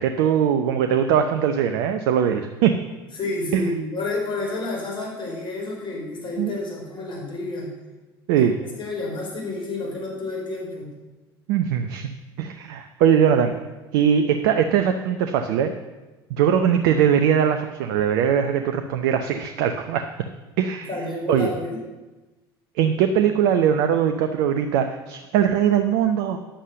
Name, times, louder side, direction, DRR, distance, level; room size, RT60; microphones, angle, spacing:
voice 1, 0.0-2.7 3.5-3.7 6.4-6.5 8.3-8.6 11.5-12.1 12.4-13.5 13.9-15.7 16.3-20.1 20.6-20.9 21.3-21.5 22.8-26.4, right 8 dB, 65° right, 7 dB, 0.7 m, -21 dB
voice 2, 3.2-7.7 8.4-8.5 8.8-10.9 20.9-21.8, left 2 dB, 40° left, -1 dB, 4.7 m, -30 dB
10.0 x 7.4 x 6.8 m, 1.1 s
hypercardioid pair, 65°, 12 cm